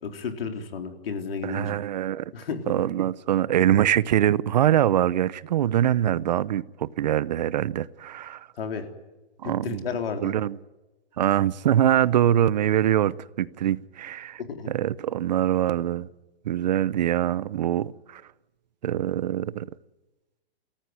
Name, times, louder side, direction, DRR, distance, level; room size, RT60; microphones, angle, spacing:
voice 1, 0.0-1.7 2.3-2.6 8.6-8.9 9.4-10.3 14.4-14.7, left 5 dB, 65° left, 3.9 m, -32 dB
voice 2, 1.4-2.2 2.7-8.5 9.4-9.8 10.2-10.6 11.2-14.4 14.7-16.1 16.4-18.2 18.8-19.7, right 11 dB, 45° right, 0.7 m, -23 dB
28.0 x 14.5 x 9.6 m
hypercardioid pair, 165°, 31 cm